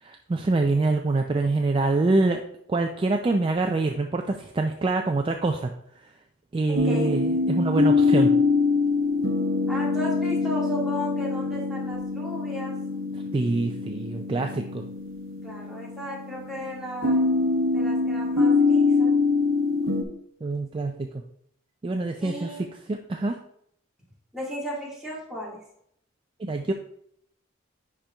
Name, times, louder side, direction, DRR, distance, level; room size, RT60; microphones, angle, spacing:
voice 1, 0.0-2.4 2.7-5.7 6.5-8.3 13.3-14.8 20.4-21.2 21.8-23.4 26.4-26.7, right 3 dB, 25° right, 4 dB, 0.3 m, -25 dB
voice 2, 6.7-7.2 9.7-12.7 15.4-17.3 17.7-19.1 22.2-22.7 24.3-25.6, equal, ahead, -6 dB, 1.9 m, -35 dB
sound 1, 6.8-20.0, left 3 dB, 75° right, 0.8 m, -24 dB
10.5 x 4.4 x 2.3 m, 0.70 s
head